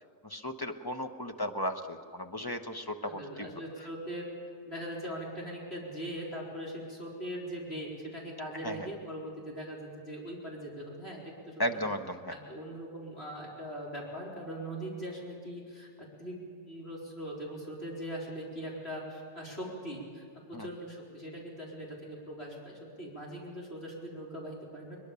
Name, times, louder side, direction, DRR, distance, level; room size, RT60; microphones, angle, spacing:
voice 1, 0.2-3.5 8.6-8.7 11.6-12.3 20.5-20.7, equal, 20° left, 6 dB, 0.8 m, -35 dB
voice 2, 3.0-4.3 4.7-11.8 12.3-15.9 16.2-25.0, equal, 35° left, -4 dB, 4.5 m, -41 dB
22.5 x 22.0 x 7.0 m, 2.2 s
omnidirectional pair, 1.7 m